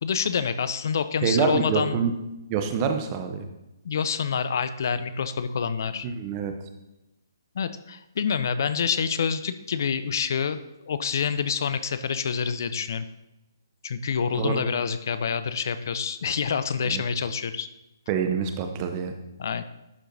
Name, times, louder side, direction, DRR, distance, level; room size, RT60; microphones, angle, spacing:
voice 1, 0.0-2.1 3.8-6.1 7.6-13.1 13.8-17.7 19.4-19.6, left 6 dB, 55° left, 12 dB, 0.4 m, -27 dB
voice 2, 1.2-2.1 2.5-3.4 6.0-6.5 14.3-14.6 16.8-17.0 18.1-19.1, right 6 dB, 30° right, 6 dB, 0.7 m, -26 dB
11.0 x 4.5 x 2.6 m, 0.95 s
hypercardioid pair, 145°, 2 cm